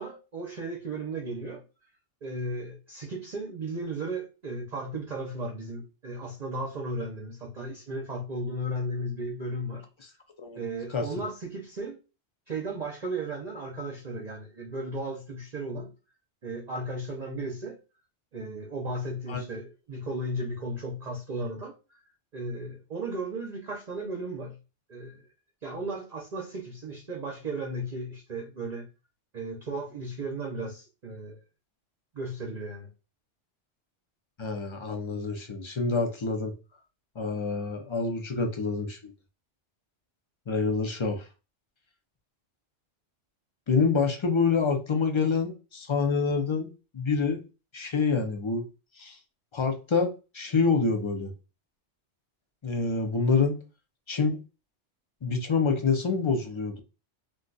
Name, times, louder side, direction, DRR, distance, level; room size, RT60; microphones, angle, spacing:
voice 1, 0.0-1.6 2.2-9.8 10.5-12.0 12.5-15.9 16.4-17.8 18.3-22.0 22.3-24.6 24.9-25.3 25.6-28.9 29.3-31.4 32.1-32.9, right 1 dB, 45° right, 0.7 m, -35 dB
voice 2, 34.4-36.5 37.2-39.1 40.5-41.3 43.7-47.4 47.7-48.6 49.0-49.2 49.5-50.1 50.3-51.3 52.6-53.6 54.1-54.4 55.2-56.8, left 4 dB, 45° left, 0.4 m, -27 dB
2.5 x 2.2 x 3.8 m
omnidirectional pair, 1.2 m